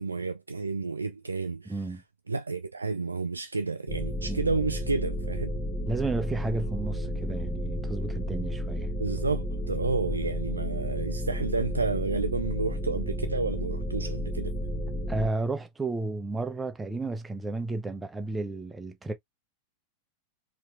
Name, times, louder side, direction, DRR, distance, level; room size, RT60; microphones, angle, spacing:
voice 1, 0.0-2.0 2.3-5.5 9.0-14.8, right 3 dB, 80° right, 0.3 m, -31 dB
voice 2, 1.7-2.0 4.3-4.4 5.9-8.9 15.1-19.1, right 2 dB, 10° right, 0.8 m, -32 dB
sound 1, 3.9-15.3, equal, 20° left, 1.2 m, -32 dB
4.4 x 3.1 x 2.6 m
figure-of-eight pair, 90°, 0 cm